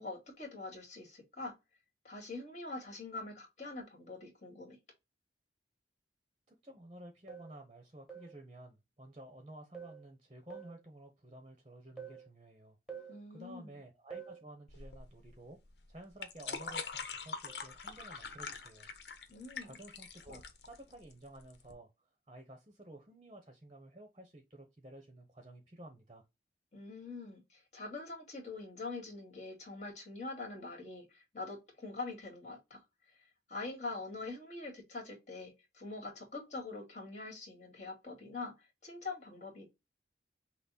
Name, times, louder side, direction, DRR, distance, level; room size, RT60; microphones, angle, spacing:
voice 1, 0.0-1.5 2.0-4.8 13.1-13.7 19.3-19.8 20.3-20.4 26.7-32.8 33.5-39.6, left 3 dB, 40° left, 2.1 m, -44 dB
voice 2, 6.5-15.6 15.9-18.9 19.6-21.9 22.3-26.2, right 1 dB, 30° right, 0.9 m, -53 dB
sound 1, 7.3-7.6 8.1-8.4 9.7-10.1 10.5-10.8 12.0-12.3 12.9-13.2 14.1-14.4 16.7-16.9 17.5-17.7, right 7 dB, 5° right, 1.2 m, -48 dB
sound 2, 14.7-21.7, left 5 dB, 75° left, 0.9 m, -44 dB
5.9 x 2.2 x 4.0 m
head